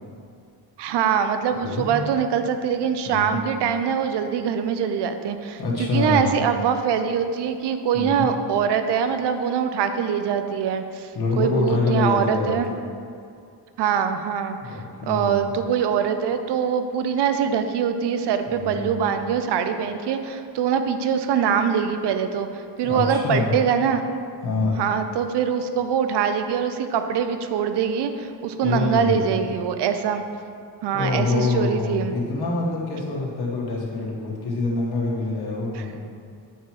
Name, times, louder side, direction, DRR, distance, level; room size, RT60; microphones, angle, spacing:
voice 1, 0.8-12.7 13.8-24.0 24.8-30.2 30.8-32.2 35.7-35.9, right 7 dB, 75° right, 8 dB, 0.5 m, -23 dB
voice 2, 1.5-2.0 3.1-3.4 5.6-6.3 7.9-8.3 11.1-12.6 14.6-15.4 18.5-18.9 22.8-23.5 24.4-24.8 28.6-29.3 30.9-36.0, left 3 dB, 60° left, -4 dB, 1.4 m, -25 dB
9.1 x 4.8 x 3.0 m, 2.3 s
wide cardioid pair, 120°, 42 cm